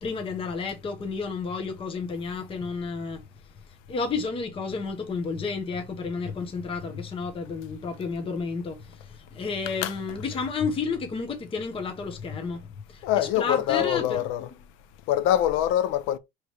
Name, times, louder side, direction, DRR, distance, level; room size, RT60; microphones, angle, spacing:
voice 1, 0.0-3.2 3.9-14.3, left 4 dB, 25° left, 0.9 m, -31 dB
voice 2, 13.0-14.5 15.1-16.2, left 12 dB, 75° left, 0.6 m, -24 dB
4.8 x 3.2 x 3.2 m
cardioid pair, 125°, 21 cm